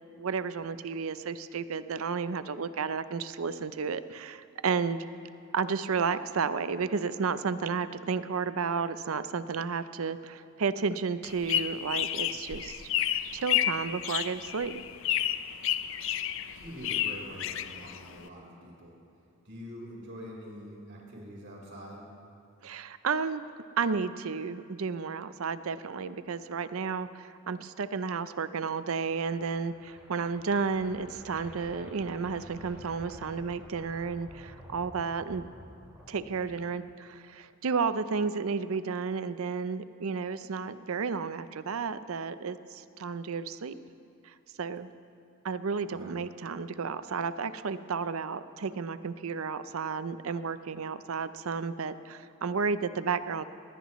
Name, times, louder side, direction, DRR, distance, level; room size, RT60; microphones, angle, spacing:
voice 1, 0.2-5.0 5.5-12.9 13.3-14.7 22.6-23.5 23.8-35.5 36.1-43.7 44.2-44.9 45.4-53.4, right 5 dB, 80° right, 13 dB, 0.6 m, -32 dB
sound 1, 11.2-18.3, left 11 dB, 65° left, 0.5 m, -31 dB
voice 2, 16.5-19.0 19.4-22.1 45.9-46.2, equal, 60° right, -3 dB, 4.3 m, -45 dB
sound 2, 29.0-36.9, equal, 10° right, 3.3 m, -51 dB
20.0 x 19.0 x 3.1 m, 2.5 s
head